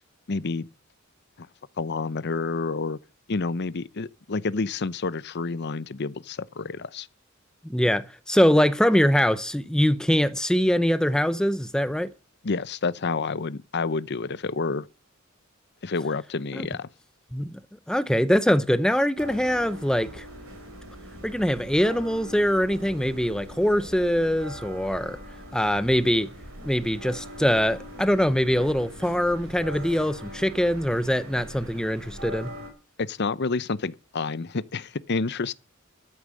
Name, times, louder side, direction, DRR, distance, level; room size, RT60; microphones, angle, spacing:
voice 1, 0.3-0.7 1.4-1.5 1.8-3.0 3.3-7.1 12.4-14.9 15.8-16.9 33.0-35.5, left 4 dB, 55° left, 0.7 m, -29 dB
voice 2, 7.6-12.1 16.5-16.7 17.3-17.5 17.9-20.3 21.2-25.2 25.5-26.3 26.6-32.5, equal, 5° left, 0.6 m, -23 dB
sound 1, 19.2-32.7, equal, 75° right, 4.6 m, -42 dB
13.0 x 8.8 x 7.5 m
head